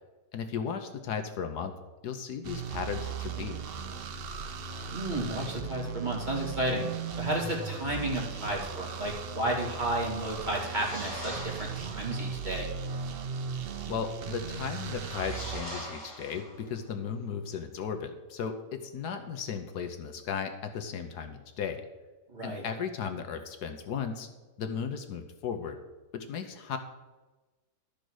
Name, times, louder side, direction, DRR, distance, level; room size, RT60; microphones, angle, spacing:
voice 1, 0.3-1.7 2.0-3.6 13.9-21.8 22.4-24.3 24.6-25.8 26.1-26.8, left 7 dB, 75° left, 7 dB, 1.4 m, -35 dB
sound 1, 2.4-15.6, right 6 dB, 60° right, 0.6 m, -37 dB
voice 2, 4.9-6.9 7.2-12.7 22.3-22.6, right 1 dB, 25° right, -3 dB, 2.4 m, -32 dB
sound 2, 10.1-12.2 14.5-16.9, equal, 15° left, 3.0 m, -43 dB
12.0 x 5.1 x 6.3 m, 1.2 s
omnidirectional pair, 1.8 m